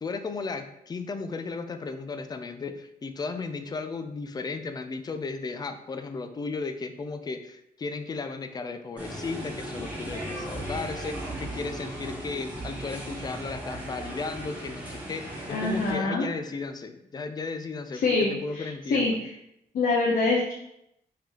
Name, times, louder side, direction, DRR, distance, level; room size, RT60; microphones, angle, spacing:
voice 1, 0.0-19.2, left 4 dB, 25° left, 9 dB, 0.3 m, -35 dB
sound 1, 9.0-15.9, right 1 dB, 10° right, 1.2 m, -37 dB
voice 2, 15.5-16.3 18.0-19.1 19.7-20.5, left 3 dB, 60° left, -3 dB, 0.7 m, -25 dB
4.9 x 3.7 x 2.9 m, 0.80 s
wide cardioid pair, 165°, 17 cm